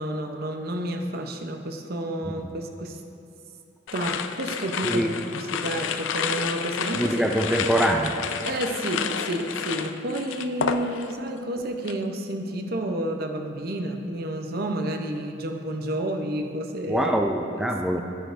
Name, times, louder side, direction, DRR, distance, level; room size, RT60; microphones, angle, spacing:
voice 1, 0.0-3.0 3.9-7.2 8.4-17.1 17.5-18.0, right 1 dB, 55° right, 5 dB, 0.7 m, -30 dB
sound 1, 3.9-11.3 11.6-12.0, left 7 dB, 85° left, 0.4 m, -30 dB
voice 2, 7.0-8.1 16.9-18.0, right 1 dB, ahead, 1 dB, 0.3 m, -23 dB
10.0 x 10.0 x 2.5 m, 2.9 s
head